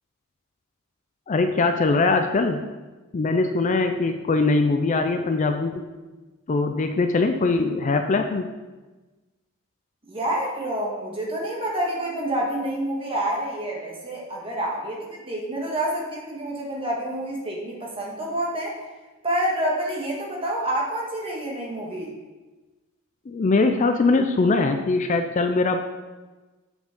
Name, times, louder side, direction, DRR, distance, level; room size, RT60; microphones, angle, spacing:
voice 1, 1.3-2.6 3.1-5.8 6.5-8.5 23.3-25.8, left 3 dB, 35° left, 6 dB, 0.4 m, -22 dB
voice 2, 10.0-18.7 19.2-22.1, right 1 dB, 25° right, -2 dB, 1.6 m, -28 dB
7.3 x 6.0 x 3.7 m, 1.2 s
head